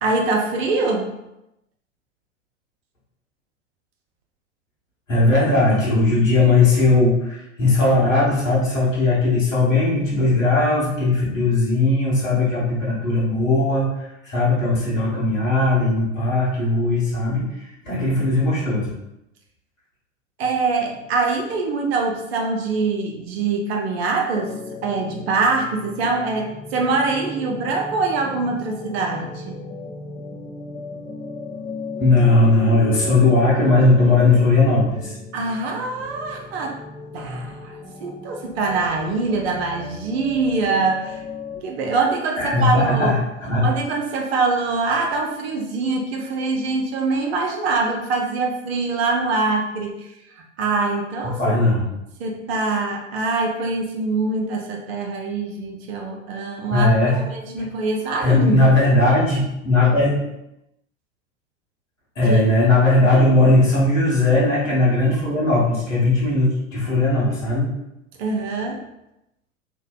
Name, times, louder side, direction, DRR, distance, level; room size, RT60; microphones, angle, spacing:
voice 1, 0.0-1.1 20.4-24.5 24.8-29.6 35.3-36.8 37.1-41.2 41.6-43.2 43.6-51.5 52.2-58.7 62.2-62.4 68.2-68.8, right 3 dB, 55° right, 2 dB, 0.6 m, -24 dB
voice 2, 5.1-18.9 32.0-35.1 42.4-43.7 51.3-51.8 56.7-57.2 58.2-60.2 62.2-67.7, left 2 dB, 80° left, -7 dB, 1.1 m, -18 dB
sound 1, 24.3-41.6, left 4 dB, 15° left, 0.4 m, -36 dB
2.5 x 2.1 x 2.3 m, 0.87 s
figure-of-eight pair, 85°, 39 cm